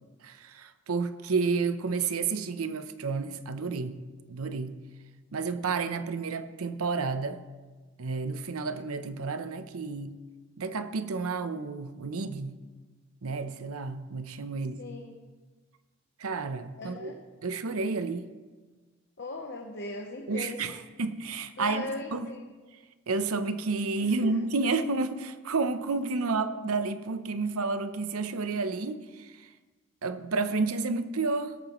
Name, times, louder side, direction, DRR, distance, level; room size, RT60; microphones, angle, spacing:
voice 1, 0.2-4.0 4.3-4.8 5.3-7.4 8.0-10.1 10.6-12.6 13.2-14.8 16.2-17.1 17.4-18.3 20.3-22.3 23.1-29.5 30.0-31.6, right 4 dB, 85° right, 10 dB, 0.7 m, -31 dB
voice 2, 14.8-15.2 16.8-17.2 19.2-20.7 21.6-22.5 24.2-24.4, left 2 dB, 50° left, 2 dB, 0.9 m, -38 dB
19.0 x 8.9 x 3.1 m, 1.3 s
head